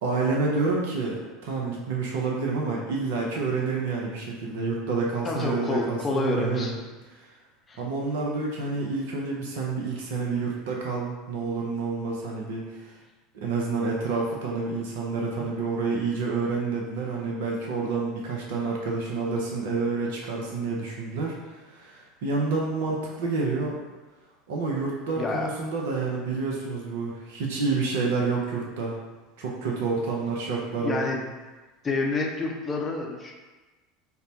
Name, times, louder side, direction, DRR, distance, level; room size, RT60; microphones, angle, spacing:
voice 1, 0.0-6.7 7.2-7.3 7.8-12.9 13.3-23.7 24.5-29.0 29.4-31.0, right 4 dB, 65° right, -2 dB, 0.5 m, -28 dB
voice 2, 5.2-6.7 7.7-7.8 15.4-15.5 17.3-17.4 25.2-25.5 30.7-31.3 31.8-33.3, left 3 dB, 25° left, 0 dB, 0.6 m, -28 dB
4.2 x 2.0 x 2.7 m, 1.2 s
hypercardioid pair, 75°, 0 cm